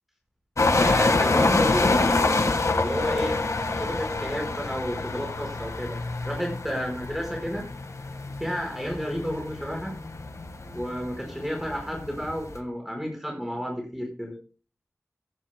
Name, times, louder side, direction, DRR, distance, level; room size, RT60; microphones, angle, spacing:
sound 1, 0.6-12.6, left 3 dB, 75° left, 1.6 m, -26 dB
voice 1, 0.7-2.1 2.7-3.4 3.7-6.0 6.2-7.7 8.4-9.9 10.7-14.3, equal, 5° right, 1 dB, 4.7 m, -31 dB
17.0 x 12.0 x 2.2 m, 0.36 s
wide cardioid pair, 75°, 5 cm